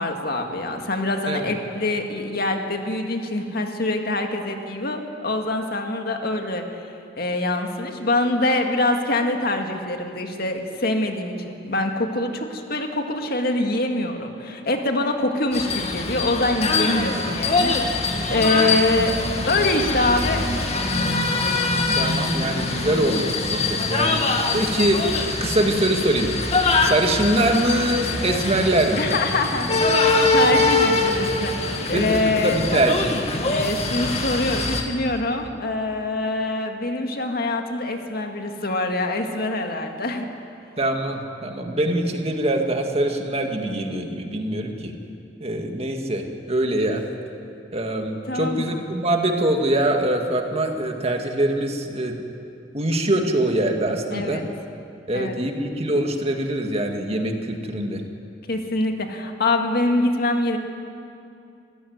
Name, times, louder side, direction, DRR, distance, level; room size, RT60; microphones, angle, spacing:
voice 1, 0.0-6.6 7.2-19.2 19.5-20.5 21.4-21.7 29.0-32.6 33.4-40.3 48.3-48.7 54.1-54.4 55.1-55.4 58.5-60.6, left 2 dB, 55° left, 4 dB, 2.0 m, -24 dB
sound 1, 15.5-34.8, left 3 dB, 35° left, 2.0 m, -23 dB
voice 2, 22.0-24.3 24.5-25.0 25.4-26.3 26.8-29.0 31.8-33.1 40.8-44.9 45.4-47.0 47.7-52.2 52.7-54.4 55.1-58.0, right 1 dB, 35° right, 3 dB, 2.1 m, -23 dB
25.5 x 14.5 x 9.5 m, 2.6 s
head